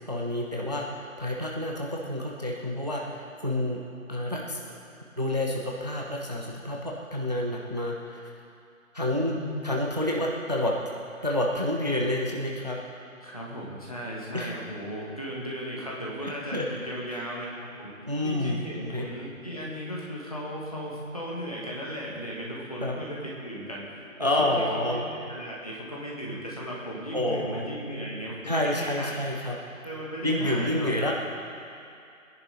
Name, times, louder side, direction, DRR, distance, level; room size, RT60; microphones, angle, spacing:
voice 1, 0.1-3.8 4.1-4.8 5.2-8.3 8.9-9.4 9.6-10.7 11.2-12.8 14.3-14.5 16.5-16.7 17.1-17.2 18.0-19.1 22.8-22.9 24.2-25.0 27.1-27.6 28.4-29.6 30.2-31.1, left 1 dB, 30° right, -1 dB, 0.9 m, -29 dB
voice 2, 9.2-9.8 13.2-17.9 18.2-29.2 29.8-30.9, equal, 25° left, -5 dB, 1.9 m, -36 dB
20.5 x 10.5 x 4.2 m, 2.5 s
figure-of-eight pair, 170°, 42 cm